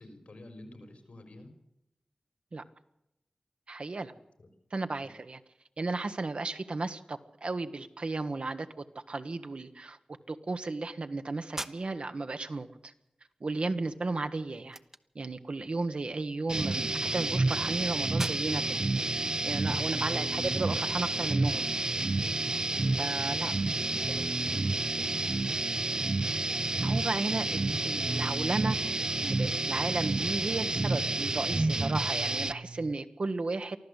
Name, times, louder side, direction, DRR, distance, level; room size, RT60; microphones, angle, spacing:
voice 1, 0.0-1.5 4.4-4.5 5.0-5.1 19.5-19.7 22.8-22.9 23.8-25.2, left 1 dB, 90° left, 7 dB, 4.8 m, -48 dB
voice 2, 3.7-4.1 4.7-5.4 5.8-10.0 10.3-12.9 13.4-14.8 15.1-18.8 19.4-21.7 23.0-23.7 26.8-28.8 29.2-33.8, right 3 dB, 60° right, 9 dB, 1.4 m, -34 dB
sound 1, 11.5-20.4, right 1 dB, 20° right, 1.0 m, -47 dB
sound 2, 16.5-32.5, right 2 dB, 40° right, 0.7 m, -30 dB
sound 3, 27.8-33.0, right 3 dB, 90° right, 0.8 m, -46 dB
24.0 x 14.5 x 8.3 m, 0.85 s
wide cardioid pair, 80°, 2 cm